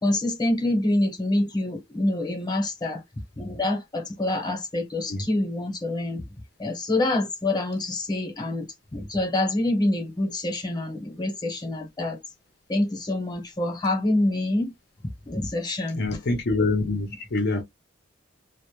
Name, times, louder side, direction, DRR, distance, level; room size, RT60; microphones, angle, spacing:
voice 1, 0.0-3.0 3.4-6.2 6.6-8.7 8.9-12.2 12.7-14.6 15.3-16.0, left 1 dB, 20° left, 0.8 m, -26 dB
voice 2, 15.9-17.6, left 3 dB, 60° left, 0.6 m, -25 dB
2.1 x 2.1 x 3.0 m
head